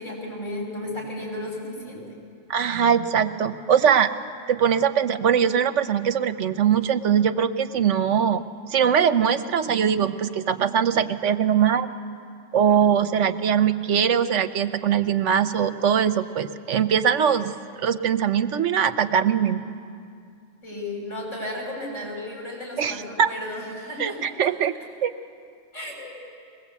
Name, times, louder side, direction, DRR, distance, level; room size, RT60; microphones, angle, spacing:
voice 1, 0.0-2.0 20.6-24.5 25.7-26.2, left 1 dB, 80° left, -2 dB, 7.3 m, -34 dB
voice 2, 2.5-4.1 4.5-11.9 12.5-17.5 17.8-19.8 22.8-23.3 24.0-24.7 25.0-25.1, right 8 dB, 75° right, 10 dB, 1.1 m, -21 dB
22.0 x 20.0 x 8.3 m, 2.3 s
omnidirectional pair, 1.3 m